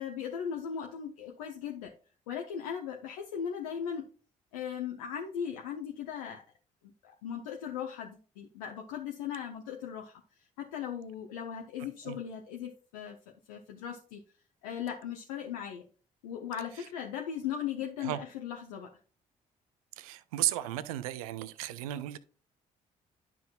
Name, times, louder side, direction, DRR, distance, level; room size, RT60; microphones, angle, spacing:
voice 1, 0.0-1.9 2.3-4.1 4.5-6.4 7.0-10.2 10.6-13.2 13.5-14.2 14.6-15.9 16.2-19.0, left 8 dB, 75° left, 0.8 m, -38 dB
voice 2, 20.0-22.2, right 14 dB, 75° right, 0.5 m, -34 dB
11.5 x 5.9 x 2.4 m
figure-of-eight pair, 45°, 18 cm